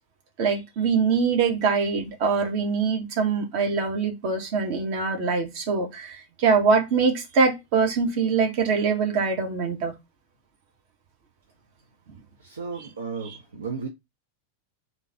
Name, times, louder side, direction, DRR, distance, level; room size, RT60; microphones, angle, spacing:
voice 1, 0.4-9.9 13.2-13.4, right 5 dB, 45° right, 1.2 m, -23 dB
voice 2, 12.4-13.9, right 5 dB, 70° right, 0.7 m, -34 dB
3.8 x 2.7 x 4.7 m
figure-of-eight pair, 90°, 0 cm